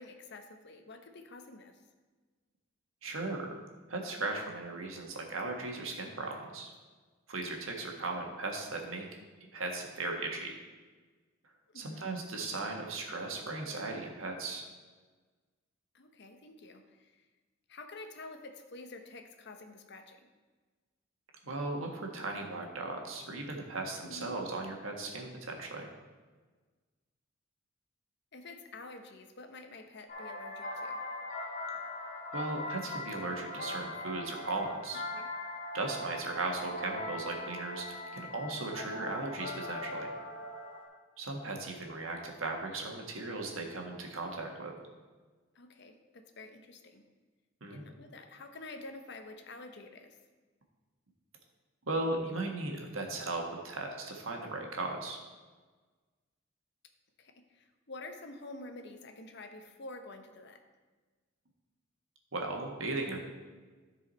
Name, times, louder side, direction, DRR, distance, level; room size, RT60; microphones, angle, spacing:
voice 1, 0.0-1.8 11.7-12.1 15.9-17.2 17.7-20.3 24.0-24.4 28.3-31.0 35.1-35.3 45.5-47.0 47.7-50.2 57.2-60.6, left 2 dB, 55° left, 6 dB, 0.9 m, -48 dB
voice 2, 3.0-3.5 3.9-6.7 7.3-9.0 9.5-10.5 11.7-14.6 21.4-25.9 32.3-35.0 35.7-40.1 41.2-44.7 47.6-47.8 51.9-55.2 62.3-63.2, right 2 dB, 85° right, 1 dB, 1.5 m, -37 dB
sound 1, 30.1-40.9, left 2 dB, 40° left, 2.1 m, -41 dB
13.5 x 4.8 x 4.1 m, 1.3 s
head